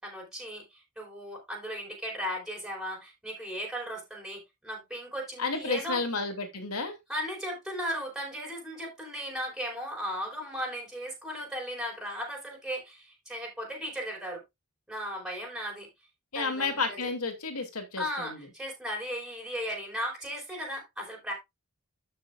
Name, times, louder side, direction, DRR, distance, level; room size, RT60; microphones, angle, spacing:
voice 1, 0.0-6.0 7.1-14.4 14.9-15.9 16.3-17.0 18.0-21.3, equal, ahead, 4.7 m, -36 dB
voice 2, 5.4-6.9 16.3-18.5, left 4 dB, 85° left, 2.7 m, -31 dB
13.5 x 6.4 x 2.5 m
head